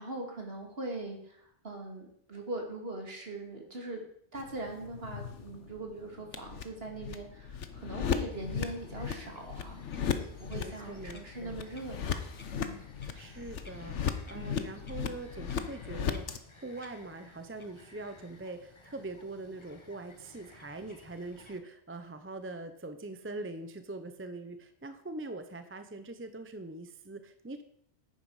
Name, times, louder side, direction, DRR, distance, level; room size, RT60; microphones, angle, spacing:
voice 1, 0.0-4.0 4.3-12.2 12.5-12.8 14.3-14.5, right 2 dB, 55° right, 2 dB, 2.6 m, -41 dB
sound 1, 4.3-16.4, left 7 dB, 80° left, 1.2 m, -37 dB
Bird vocalization bird call bird song, 8.3-21.6, left 3 dB, 25° left, 1.1 m, -56 dB
voice 2, 10.5-11.6 13.1-27.6, right 2 dB, 15° right, 9 dB, 0.6 m, -43 dB
10.5 x 9.5 x 4.8 m, 0.68 s
omnidirectional pair, 1.2 m